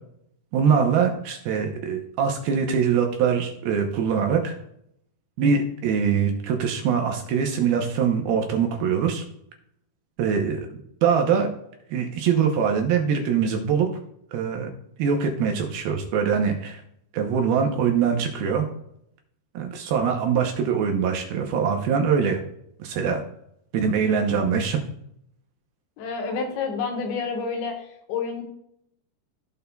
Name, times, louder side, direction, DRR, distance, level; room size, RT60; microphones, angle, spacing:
voice 1, 0.5-4.6 5.4-9.2 10.2-10.7 11.0-11.5 11.9-13.9 14.3-14.7 15.0-16.8 17.1-18.7 19.5-22.4 22.8-23.2 23.7-24.8, right 6 dB, 75° right, 3 dB, 2.4 m, -23 dB
voice 2, 26.0-28.4, left 5 dB, 85° left, 2 dB, 3.6 m, -29 dB
16.0 x 5.4 x 2.3 m, 0.73 s
omnidirectional pair, 5.1 m